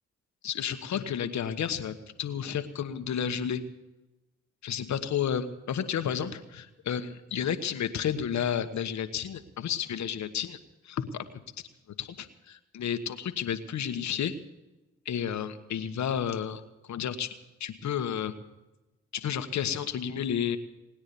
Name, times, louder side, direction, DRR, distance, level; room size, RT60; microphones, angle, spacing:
voice 1, 0.4-3.6 4.6-10.6 10.8-11.2 12.0-14.3 15.0-17.3 17.6-18.3 19.1-20.6, left 8 dB, 70° left, 9 dB, 1.2 m, -31 dB
21.0 x 9.7 x 6.9 m, 1.0 s
hypercardioid pair, 40°, 29 cm